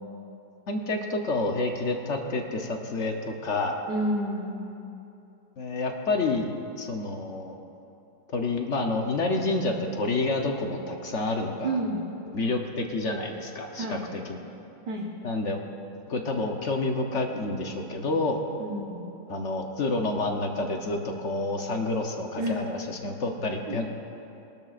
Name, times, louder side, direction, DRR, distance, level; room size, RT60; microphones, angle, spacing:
voice 1, 0.7-3.8 5.6-7.5 8.3-11.8 12.3-14.4 15.2-15.6 16.1-18.4 19.3-23.9, left 2 dB, 50° left, 3 dB, 1.0 m, -29 dB
voice 2, 3.9-4.5 11.6-12.0 13.7-14.1 14.9-15.1 18.6-19.1 22.4-22.6 23.7-23.8, right 1 dB, 75° right, -4 dB, 1.8 m, -30 dB
20.5 x 12.0 x 2.4 m, 2.8 s
omnidirectional pair, 1.9 m